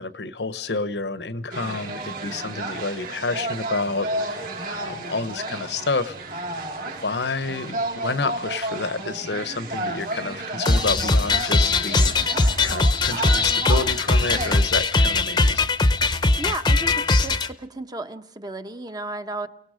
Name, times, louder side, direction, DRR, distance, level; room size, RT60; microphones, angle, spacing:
voice 1, 0.0-6.1 7.0-15.6, left 3 dB, 75° left, 13 dB, 1.0 m, -29 dB
sound 1, 1.5-14.6, right 2 dB, 55° right, 4.9 m, -32 dB
sound 2, 10.6-17.5, left 3 dB, 25° left, 0.8 m, -20 dB
voice 2, 16.4-19.5, right 2 dB, 25° right, 8 dB, 1.0 m, -33 dB
29.0 x 19.0 x 5.1 m, 0.67 s
head